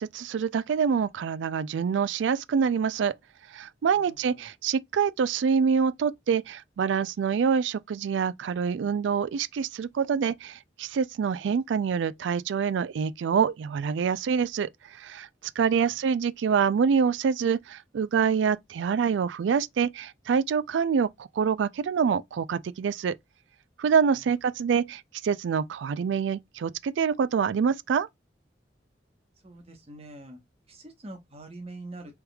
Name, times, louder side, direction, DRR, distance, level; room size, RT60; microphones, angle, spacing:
voice 1, 0.0-3.1 3.5-15.3 15.6-23.1 23.8-28.1, right 6 dB, 85° right, 0.3 m, -26 dB
voice 2, 3.9-4.5 15.8-16.0 24.1-24.3 29.4-30.4 30.7-32.2, right 2 dB, 35° right, 1.0 m, -45 dB
3.5 x 3.1 x 2.2 m
head